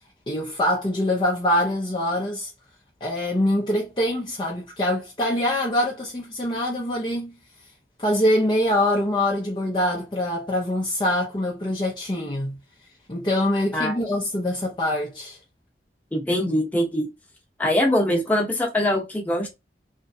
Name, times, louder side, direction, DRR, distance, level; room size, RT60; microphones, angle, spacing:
voice 1, 0.3-2.5 3.0-7.3 8.0-12.6 13.1-15.4, left 1 dB, 25° left, 0.6 m, -24 dB
voice 2, 16.1-17.1 17.6-19.5, left 1 dB, 10° left, 0.9 m, -22 dB
3.2 x 3.1 x 2.7 m
head